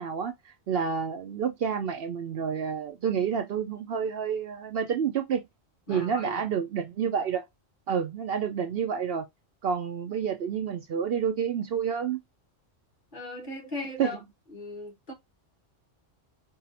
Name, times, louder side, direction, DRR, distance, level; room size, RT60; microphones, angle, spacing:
voice 1, 0.0-5.4 5.9-7.4 7.9-9.3 9.6-12.2 14.0-14.2, right 7 dB, 60° right, 0.7 m, -29 dB
voice 2, 5.9-6.5 13.1-14.2 14.5-15.1, left 2 dB, 45° left, 1.7 m, -37 dB
4.6 x 2.6 x 4.1 m
omnidirectional pair, 1.3 m